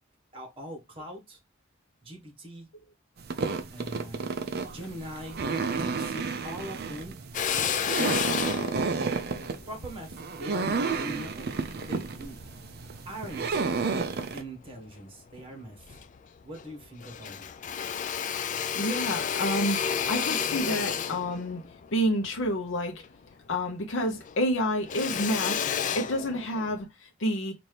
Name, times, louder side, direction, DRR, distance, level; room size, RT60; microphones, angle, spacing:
voice 1, 0.3-1.4 2.0-2.7 3.7-4.4 4.7-5.4 5.8-7.1 7.5-8.4 9.7-12.4 13.0-13.6 14.3-16.0 16.4-17.5, equal, 25° right, 1.5 m, -42 dB
sound 1, 3.2-14.4, right 4 dB, 50° right, 0.5 m, -31 dB
Drill, 7.3-11.9 12.4-13.6 14.1-15.0 15.4-15.5 15.7-16.7 17.0-23.7 24.0-26.8, left 7 dB, 40° left, 0.3 m, -32 dB
voice 2, 18.7-21.6 21.9-23.0 23.5-25.6 25.9-27.5, equal, 65° left, 0.8 m, -29 dB
4.2 x 2.6 x 3.2 m
head